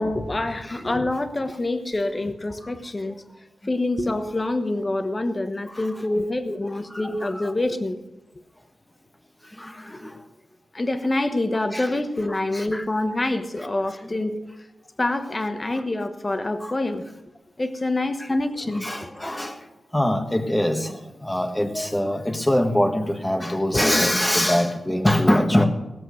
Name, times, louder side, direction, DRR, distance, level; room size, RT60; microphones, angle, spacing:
voice 1, 0.0-3.2 3.6-8.0 10.7-14.3 15.0-17.0 17.6-19.2, left 2 dB, 25° left, 8 dB, 1.1 m, -26 dB
voice 2, 6.9-7.5 9.4-10.2 11.7-12.0 12.5-12.8 13.6-13.7 15.7-15.8 16.6-16.7 18.2-18.3 18.7-19.7 19.9-25.6, left 1 dB, 10° left, 5 dB, 1.4 m, -24 dB
18.0 x 7.7 x 6.4 m, 1.0 s
wide cardioid pair, 120°, 0 cm